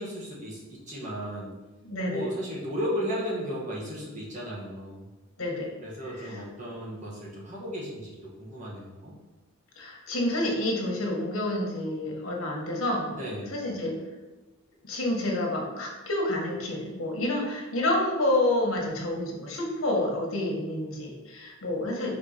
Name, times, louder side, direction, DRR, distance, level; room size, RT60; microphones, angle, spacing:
voice 1, 0.0-1.5 2.1-5.1 5.8-9.1 13.1-13.5, equal, 35° right, -5 dB, 1.6 m, -35 dB
voice 2, 1.8-2.3 5.4-5.7 6.2-6.4 9.8-14.0 14.8-22.2, left 1 dB, 75° left, -1 dB, 1.5 m, -29 dB
4.8 x 4.4 x 5.1 m, 1.1 s
head